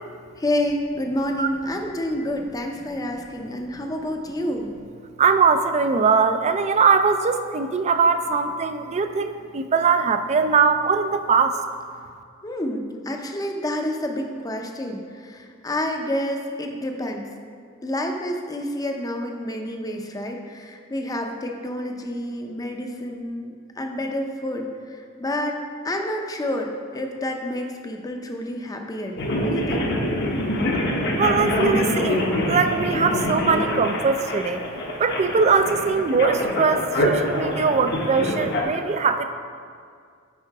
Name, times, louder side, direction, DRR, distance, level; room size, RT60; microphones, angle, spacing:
voice 1, 0.4-4.7 12.4-17.3 17.8-24.6 24.9-25.6 25.8-29.2 29.4-29.9, left 1 dB, 20° left, 3 dB, 0.6 m, -29 dB
voice 2, 5.2-11.6 31.2-34.6 35.0-39.3, right 5 dB, 35° right, 9 dB, 0.4 m, -21 dB
sound 1, 29.2-38.6, left 1 dB, 55° left, 0.9 m, -25 dB
9.1 x 3.8 x 4.8 m, 2.1 s
head